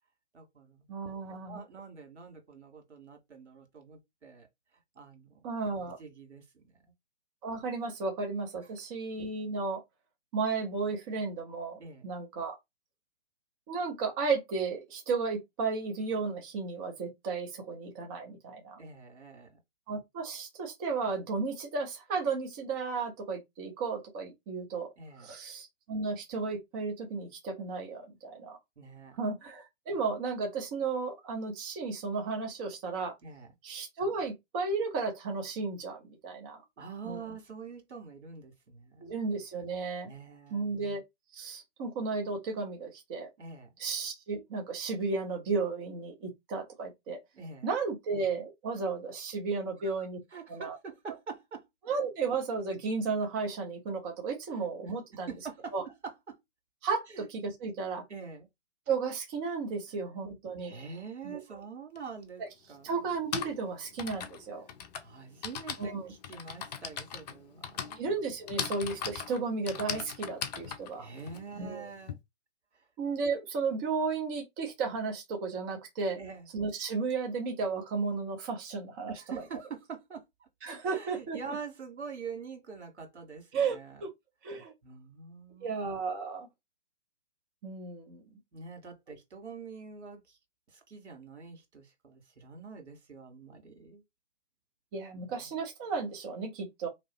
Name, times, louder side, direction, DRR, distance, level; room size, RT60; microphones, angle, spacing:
voice 1, 0.3-0.9 1.5-4.5 5.0-5.5 6.0-6.8 11.8-12.1 18.8-19.6 25.0-25.3 28.8-29.2 33.2-33.5 36.8-39.1 40.0-40.7 43.4-43.7 47.3-47.7 49.8-49.9 50.3-51.7 54.5-54.7 55.1-56.4 57.1-57.3 58.1-58.5 60.6-62.4 62.7-63.0 65.0-68.0 71.0-72.2 72.7-72.9 76.2-76.5 79.1-80.5 80.8-84.0 84.8-85.7 88.5-90.4 90.7-94.0 95.1-95.5, right 5 dB, 70° right, 1.8 m, -45 dB
voice 2, 0.9-1.6 5.4-6.0 7.4-9.8 10.3-12.6 13.7-18.8 19.9-24.9 25.2-28.6 29.2-33.1 33.6-36.6 37.0-37.2 39.0-40.1 40.5-41.0 41.3-43.3 43.8-47.2 47.6-50.2 50.5-50.8 51.9-55.3 55.7-55.8 56.8-58.0 58.9-60.7 61.2-61.4 62.8-64.6 65.8-66.1 68.0-71.1 71.6-71.9 73.0-76.2 76.5-79.1 80.6-81.4 83.5-84.1 84.4-84.7 85.6-86.5 87.6-88.2 94.9-96.9, right 4 dB, 20° right, 0.6 m, -34 dB
Typing, 62.0-62.1 63.0-72.1, left 7 dB, 35° left, 0.7 m, -39 dB
3.8 x 3.0 x 3.0 m
figure-of-eight pair, 135°, 35 cm